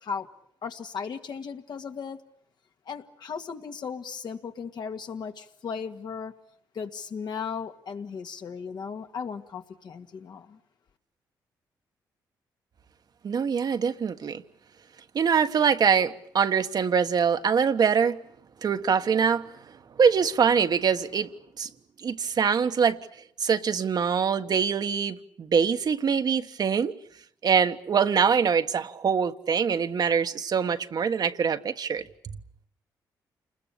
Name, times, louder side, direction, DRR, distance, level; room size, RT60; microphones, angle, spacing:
voice 1, 0.6-2.2 2.9-6.3 6.7-10.6, left 6 dB, 60° left, 2.1 m, -36 dB
voice 2, 13.2-14.4 15.1-18.2 18.6-19.5 20.0-21.3 21.6-21.7 22.0-23.0 23.4-26.9 27.4-32.0, right 6 dB, 55° right, 1.4 m, -24 dB
28.5 x 20.5 x 8.6 m
supercardioid pair, 65°, 8 cm